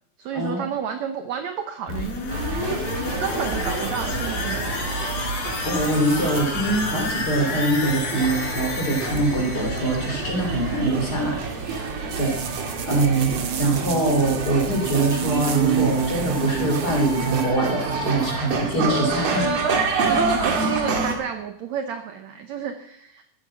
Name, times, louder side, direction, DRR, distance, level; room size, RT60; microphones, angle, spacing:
voice 1, 0.2-2.4 2.7-2.8 3.2-4.9 19.3-23.2, right 8 dB, 70° right, 7 dB, 1.7 m, -31 dB
sound 1, 1.9-11.6 11.9-12.0, left 3 dB, 85° left, 4.2 m, -31 dB
sound 2, 2.3-21.1, right 4 dB, 50° right, 2.7 m, -28 dB
sound 3, 2.3-17.5, right 9 dB, 90° right, 1.0 m, -32 dB
voice 2, 5.6-11.9 12.2-19.5, right 2 dB, 30° left, 1 dB, 3.2 m, -24 dB
14.0 x 8.9 x 7.6 m, 0.76 s
omnidirectional pair, 4.1 m